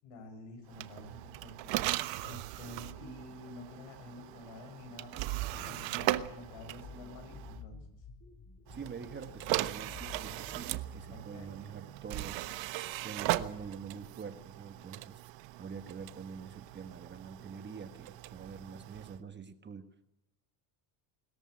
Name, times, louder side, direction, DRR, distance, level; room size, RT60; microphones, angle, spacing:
voice 1, 0.0-8.0 11.1-11.5, left 2 dB, 75° left, 6 dB, 7.7 m, -49 dB
sound 1, 0.7-7.6 8.7-19.2, right 16 dB, 70° right, 1.2 m, -38 dB
sound 2, 5.5-10.6, left 4 dB, 25° left, 3.0 m, -52 dB
voice 2, 8.7-12.4 13.0-15.2 15.6-19.9, right 6 dB, 25° right, 9 dB, 1.4 m, -45 dB
21.5 x 14.0 x 9.7 m, 0.92 s
cardioid pair, 135°, 46 cm